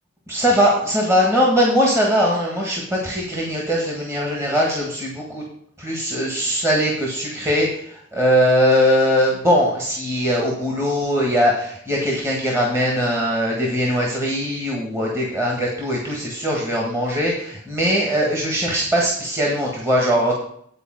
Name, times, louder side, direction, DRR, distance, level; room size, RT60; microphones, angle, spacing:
voice 1, 0.3-5.4 5.8-20.4, equal, 15° right, -3 dB, 1.7 m, -20 dB
10.0 x 4.7 x 7.8 m, 0.67 s
head